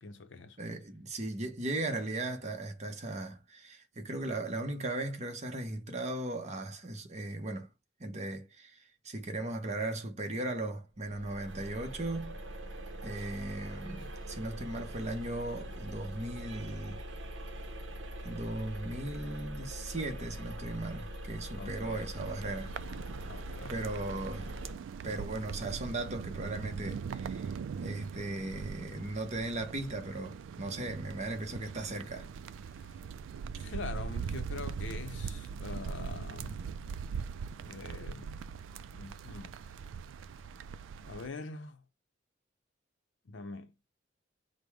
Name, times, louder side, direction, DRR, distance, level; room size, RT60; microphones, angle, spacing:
voice 1, 0.0-0.6 13.4-13.5 21.6-22.1 23.3-24.2 32.7-32.9 33.6-36.7 37.6-38.5 38.9-39.6 41.0-41.8 43.2-43.7, left 3 dB, 70° left, 0.7 m, -44 dB
voice 2, 0.6-7.7 8.0-12.4 13.0-17.0 18.2-22.7 23.7-24.5 25.0-27.5 27.8-32.3, right 2 dB, 35° right, 0.9 m, -37 dB
sound 1, 11.0-24.7, right 1 dB, 75° right, 0.8 m, -43 dB
sound 2, 22.2-41.3, right 6 dB, 90° right, 0.3 m, -41 dB
5.2 x 2.1 x 4.6 m
head